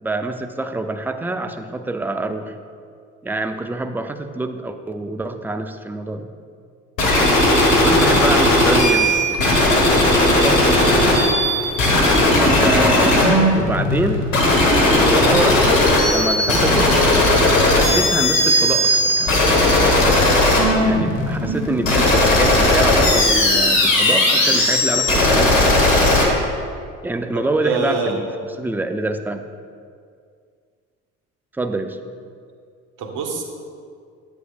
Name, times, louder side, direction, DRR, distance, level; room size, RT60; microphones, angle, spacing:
voice 1, 0.0-2.5 3.2-6.3 7.7-9.4 10.3-11.3 12.6-14.3 14.7-17.0 17.7-19.4 20.8-25.8 27.0-28.3 28.6-29.4 31.6-32.0, right 2 dB, 5° right, 7 dB, 0.5 m, -26 dB
sound 1, 7.0-26.2, left 1 dB, 80° left, 1.4 m, -16 dB
voice 2, 7.4-7.8 27.3-28.2 33.0-33.4, right 4 dB, 50° right, 2 dB, 1.4 m, -26 dB
11.0 x 7.9 x 2.4 m, 2.1 s
hypercardioid pair, 55°, 39 cm